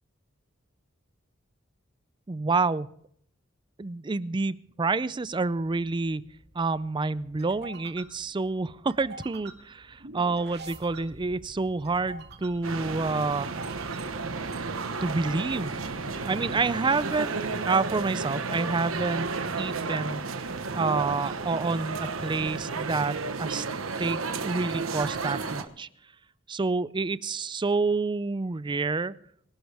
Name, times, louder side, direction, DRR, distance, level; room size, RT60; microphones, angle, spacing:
voice 1, 2.3-2.9 3.8-6.2 6.6-13.5 15.0-15.7 16.3-17.3 17.6-19.3 19.6-20.3 20.7-23.7 24.0-25.9 26.5-29.1, right 3 dB, 25° right, 17 dB, 0.4 m, -28 dB
sound 1, 5.1-17.8, right 2 dB, 55° right, 2.2 m, -48 dB
sound 2, 12.6-25.6, right 4 dB, 85° right, 1.2 m, -32 dB
23.5 x 11.5 x 3.5 m, 0.66 s
head